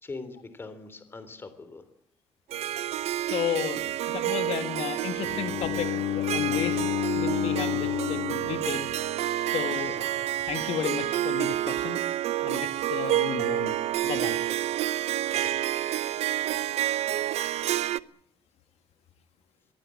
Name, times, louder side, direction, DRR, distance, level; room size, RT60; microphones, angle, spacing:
voice 1, 0.0-1.8 9.8-10.0 14.7-15.1 15.4-15.5 15.9-16.5 17.0-17.2, left 3 dB, 20° left, 11 dB, 3.5 m, -44 dB
Harp, 2.5-18.0, right 13 dB, 85° right, 0.9 m, -29 dB
voice 2, 3.3-6.8 7.1-8.9 9.5-12.0 12.4-13.8 14.0-14.4, left 10 dB, 80° left, 10 dB, 2.0 m, -33 dB
Bowed string instrument, 5.2-9.3, left 13 dB, 50° left, 0.9 m, -30 dB
23.5 x 17.5 x 8.5 m, 0.71 s
cardioid pair, 170°, 11 cm